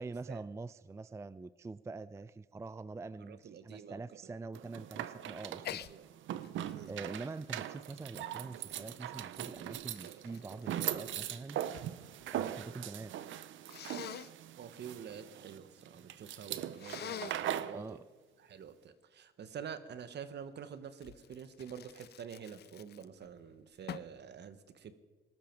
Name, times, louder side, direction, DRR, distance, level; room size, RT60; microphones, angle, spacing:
voice 1, 0.0-5.9 6.9-11.6 12.2-13.1 17.7-18.0, right 3 dB, 15° right, 16 dB, 0.3 m, -45 dB
voice 2, 3.3-4.0 5.9-6.1 6.7-6.9 14.6-18.0 18.4-24.9, right 7 dB, 60° right, 12 dB, 1.2 m, -47 dB
sound 1, 4.5-17.8, right 11 dB, 75° right, 0.7 m, -40 dB
Sneeze, 5.6-5.9 6.4-8.8 9.5-11.9 12.2-12.8 13.7-14.3 16.8-17.5 21.0-23.3 23.9-24.2, left 11 dB, 55° left, 0.5 m, -47 dB
19.5 x 12.5 x 4.6 m, 1.3 s
cardioid pair, 90°, 20 cm